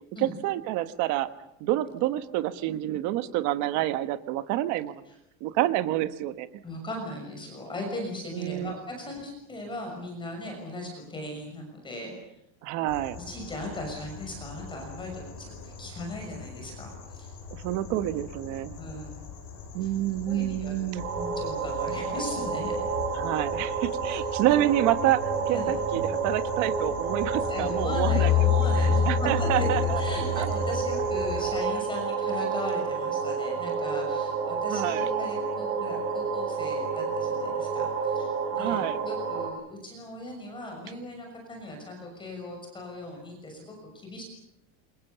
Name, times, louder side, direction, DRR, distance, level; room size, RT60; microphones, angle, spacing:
voice 1, 0.2-1.3 1.6-5.1 5.4-6.5 8.3-8.7 12.6-13.2 17.5-18.8 19.7-21.0 23.1-28.3 28.8-30.0 30.3-30.5 34.7-35.1 38.6-39.0, right 14 dB, 45° right, 11 dB, 1.3 m, -28 dB
voice 2, 6.6-12.1 13.3-17.3 18.8-19.2 19.8-19.9 20.3-20.7 21.2-22.7 24.1-24.2 25.5-25.7 27.4-29.7 29.9-44.2, left 1 dB, 10° left, 2 dB, 6.3 m, -38 dB
sound 1, 12.9-31.5, left 8 dB, 45° left, 7.4 m, -32 dB
sound 2, 21.0-39.5, right 5 dB, 65° right, 7.7 m, -30 dB
28.5 x 26.0 x 7.0 m, 0.84 s
cardioid pair, 175°, 40 cm